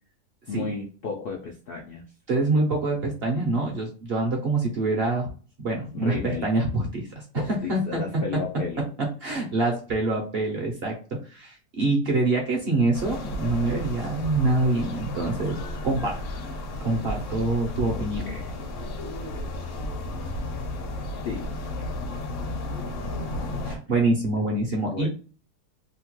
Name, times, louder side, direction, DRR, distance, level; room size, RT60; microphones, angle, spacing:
voice 1, 0.5-2.0 5.9-6.5 7.3-8.9 17.9-18.6 21.2-21.5 24.9-25.1, left 5 dB, 80° left, 0 dB, 0.5 m, -33 dB
voice 2, 2.3-5.3 5.6-7.2 7.5-8.0 9.0-11.0 11.3-15.6 15.8-16.2 16.8-18.2 23.6-25.1, right 2 dB, 55° right, 0 dB, 0.7 m, -25 dB
sound 1, 12.9-23.8, left 1 dB, 60° left, 0.9 m, -33 dB
2.8 x 2.2 x 2.9 m, 0.37 s
omnidirectional pair, 1.7 m